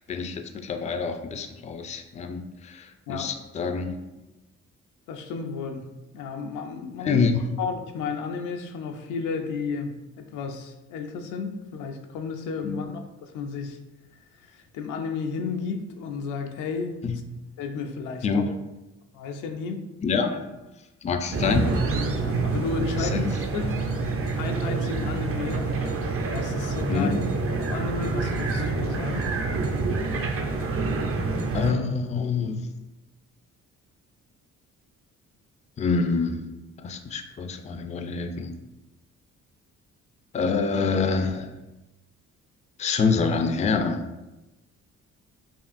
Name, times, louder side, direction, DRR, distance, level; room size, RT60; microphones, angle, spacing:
voice 1, 0.0-4.0 7.0-7.4 12.6-12.8 17.0-17.2 18.2-18.5 20.0-20.4 21.0-21.7 23.0-23.2 26.9-27.2 31.5-32.6 35.8-36.4 36.8-38.5 40.3-41.6 42.8-44.0, left 5 dB, 25° left, 6 dB, 0.3 m, -26 dB
voice 2, 5.1-7.2 7.6-13.8 14.5-17.0 17.6-18.4 19.1-19.9 22.2-23.7 24.4-25.7 26.3-27.2 27.6-29.3, left 5 dB, 90° left, 5 dB, 0.5 m, -33 dB
sound 1, 21.3-31.7, right 3 dB, 45° right, 0.6 m, -27 dB
5.3 x 2.4 x 2.5 m, 1.0 s
cardioid pair, 90°, 30 cm